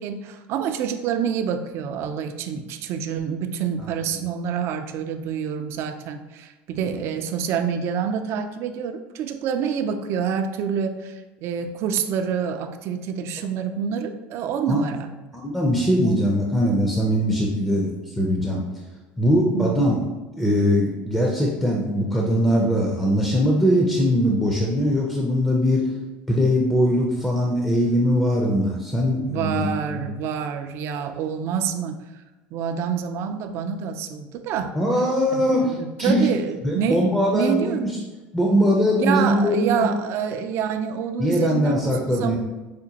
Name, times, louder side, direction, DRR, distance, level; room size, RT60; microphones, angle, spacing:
voice 1, 0.0-15.1 16.0-16.2 19.5-19.9 29.2-32.0 32.5-34.8 35.3-37.9 39.0-42.4, right 7 dB, 55° right, 8 dB, 0.4 m, -27 dB
voice 2, 15.3-18.6 19.2-20.0 20.4-25.9 26.3-30.0 34.7-36.3 36.6-38.0 38.3-39.9 41.2-42.4, equal, 5° left, -2 dB, 0.5 m, -21 dB
4.9 x 2.1 x 2.8 m, 1.2 s
supercardioid pair, 105°, 5 cm